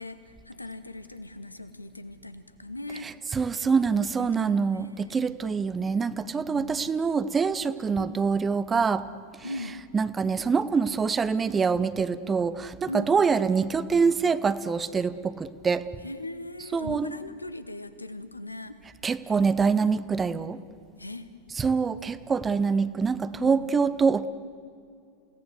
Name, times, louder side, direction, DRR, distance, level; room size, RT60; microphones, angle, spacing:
voice 1, 0.0-3.1 3.9-5.3 6.4-6.9 8.0-8.2 9.4-9.8 12.9-13.2 16.0-18.8 21.0-21.3 23.4-23.8, left 2 dB, 85° left, 12 dB, 1.2 m, -39 dB
voice 2, 3.3-9.0 9.9-15.8 16.7-17.1 19.0-20.6 21.6-24.3, right 5 dB, 15° right, 15 dB, 0.8 m, -25 dB
29.0 x 17.5 x 8.1 m, 2.4 s
figure-of-eight pair, 90°, 0 cm